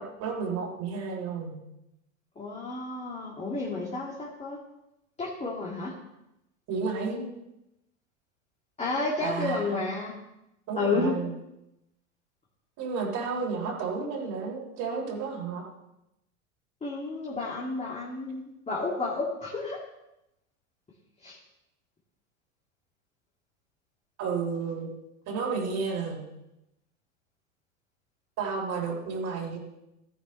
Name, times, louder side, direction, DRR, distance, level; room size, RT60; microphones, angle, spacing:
voice 1, 0.0-1.6 6.7-7.3 9.2-9.8 10.7-11.3 12.8-15.6 24.2-24.9 25.3-26.2 28.4-29.6, right 5 dB, 45° right, -2 dB, 3.4 m, -32 dB
voice 2, 2.4-4.6 5.2-5.9 8.8-10.1 10.8-11.2 16.8-19.8 21.2-21.4, left 3 dB, 15° left, -4 dB, 2.2 m, -31 dB
13.5 x 10.0 x 3.1 m, 0.89 s
hypercardioid pair, 100°, 39 cm